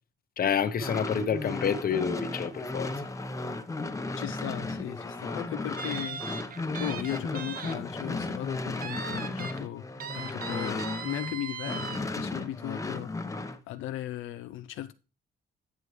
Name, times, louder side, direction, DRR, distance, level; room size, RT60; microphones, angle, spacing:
voice 1, 0.4-2.9, left 7 dB, 50° left, 0.9 m, -28 dB
sound 1, 0.7-11.3 11.6-13.6, left 2 dB, 15° left, 0.8 m, -35 dB
voice 2, 4.2-9.9 10.1-13.3 13.7-14.9, left 13 dB, 85° left, 0.5 m, -37 dB
sound 2, 5.8-7.7 8.1-8.2 8.8-9.6 10.0-12.0, right 6 dB, 45° right, 0.9 m, -39 dB
9.3 x 6.8 x 3.2 m
cardioid pair, 90°, 20 cm